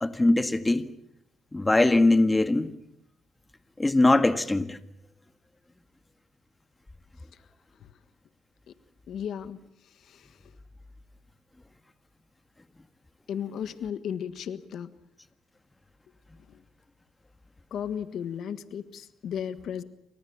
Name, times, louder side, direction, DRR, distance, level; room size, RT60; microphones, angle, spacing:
voice 1, 0.0-0.9 1.5-2.7 3.8-4.8, left 2 dB, 15° left, 1.8 m, -21 dB
voice 2, 9.1-9.6 10.0-10.4 13.3-14.9 16.5-16.6 17.7-19.8, left 8 dB, 70° left, 1.5 m, -35 dB
29.0 x 25.5 x 7.1 m
cardioid pair, 90°, 0 cm